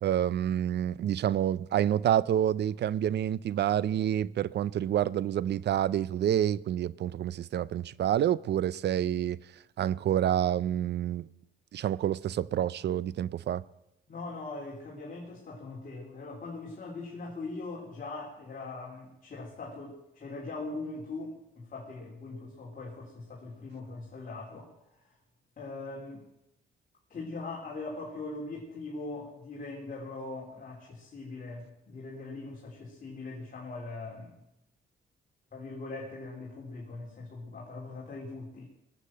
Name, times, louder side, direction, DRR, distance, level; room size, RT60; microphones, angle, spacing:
voice 1, 0.0-9.4 9.8-11.3 11.7-13.6, right 10 dB, 60° right, 0.5 m, -28 dB
voice 2, 14.1-24.7 25.6-26.3 27.1-34.3 35.5-38.6, left 3 dB, 45° left, 3.5 m, -41 dB
19.5 x 7.6 x 7.6 m
cardioid pair, 90°, 20 cm